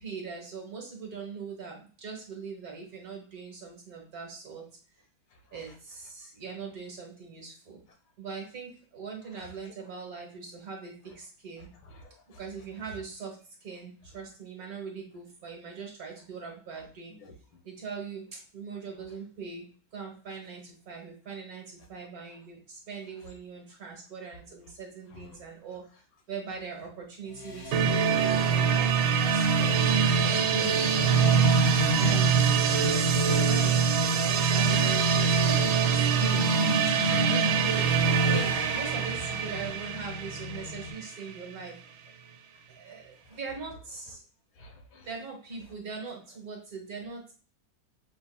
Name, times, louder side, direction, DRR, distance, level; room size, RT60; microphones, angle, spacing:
voice 1, 0.0-4.6 5.5-7.8 8.2-11.7 12.4-17.1 17.6-25.9 26.3-30.9 32.0-32.6 33.3-36.5 37.0-41.8 42.7-44.2 45.0-47.3, right 5 dB, 55° right, 1 dB, 1.4 m, -41 dB
voice 2, 5.3-5.6 9.3-9.7 11.6-12.4 17.1-17.3 25.1-25.4 43.2-43.4 44.5-45.1, left 2 dB, 80° left, 3 dB, 1.8 m, -53 dB
sound 1, 27.2-40.9, left 3 dB, 45° left, 1.3 m, -36 dB
sound 2, 27.7-41.4, right 6 dB, 85° right, 1.4 m, -24 dB
5.8 x 3.5 x 2.2 m, 0.39 s
omnidirectional pair, 2.1 m